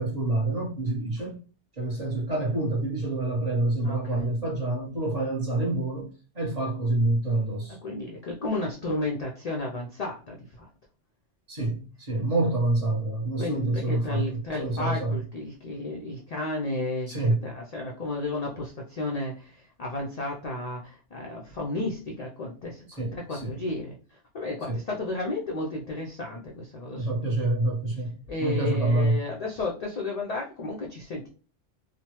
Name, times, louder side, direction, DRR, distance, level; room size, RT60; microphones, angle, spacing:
voice 1, 0.0-1.3 1.8-6.1 6.3-7.8 11.5-15.2 17.1-17.4 23.0-23.6 24.7-24.8 27.0-29.2, right 2 dB, 35° right, 0.9 m, -27 dB
voice 2, 3.8-4.2 7.8-10.7 13.4-27.1 28.3-31.3, left 2 dB, 55° left, 0.4 m, -33 dB
3.1 x 2.1 x 2.8 m
omnidirectional pair, 1.2 m